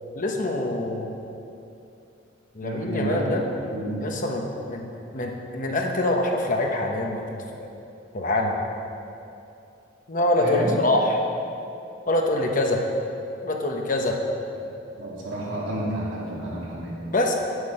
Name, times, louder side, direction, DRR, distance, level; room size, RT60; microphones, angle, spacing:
voice 1, 0.1-1.2 2.5-3.4 4.0-4.9 5.1-7.3 7.6-7.7 8.1-8.5 10.1-11.2 12.1-12.8 13.4-14.2 17.1-17.3, left 1 dB, 45° left, 1 dB, 1.0 m, -24 dB
voice 2, 2.6-4.1 10.4-10.7 15.0-16.9, right 1 dB, 80° right, -6 dB, 2.8 m, -30 dB
9.6 x 8.2 x 5.5 m, 2.7 s
head